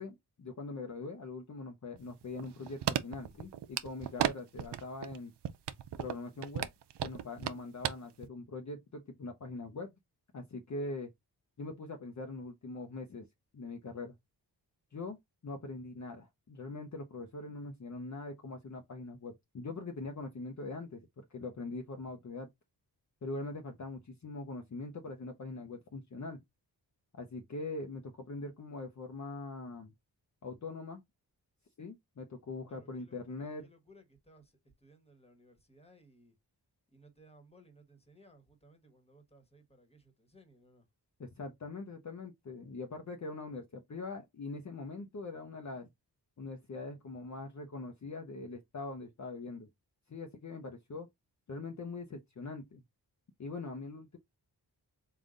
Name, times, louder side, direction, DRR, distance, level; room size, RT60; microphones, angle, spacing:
voice 1, 0.0-5.3 6.0-6.7 7.0-9.9 10.3-11.1 11.6-13.2 13.5-14.1 14.9-15.2 15.4-22.5 23.2-26.4 27.1-29.9 30.4-31.0 31.8-33.7 41.2-45.9 46.4-49.7 50.1-51.1 51.5-52.8 53.4-54.2, left 3 dB, 40° left, 0.7 m, -42 dB
sound 1, 2.0-4.3 4.6-5.2 5.4-7.9 8.2-8.3, right 10 dB, 70° right, 0.6 m, -34 dB
voice 2, 32.7-34.5 34.8-36.3 36.9-40.8, equal, 15° left, 1.4 m, -61 dB
3.7 x 2.5 x 3.7 m
cardioid pair, 65°, 42 cm